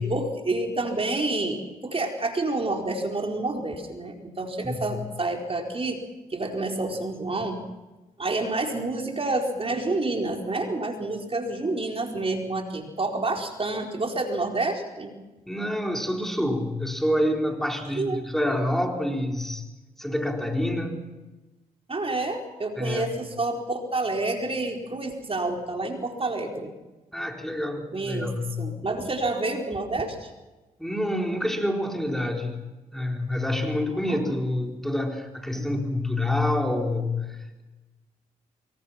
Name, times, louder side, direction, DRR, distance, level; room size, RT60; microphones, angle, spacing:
voice 1, 0.0-6.0 6.3-7.6 8.2-15.2 17.9-18.2 21.9-26.7 27.9-28.3 28.6-30.3 33.5-34.4 35.5-35.7, right 2 dB, 35° right, 2 dB, 4.4 m, -29 dB
voice 2, 15.5-19.6 20.0-21.1 22.8-23.1 27.1-28.8 30.8-32.6 32.9-37.6, left 1 dB, ahead, 2 dB, 4.3 m, -27 dB
24.5 x 23.0 x 5.9 m, 1.1 s
supercardioid pair, 50°, 16 cm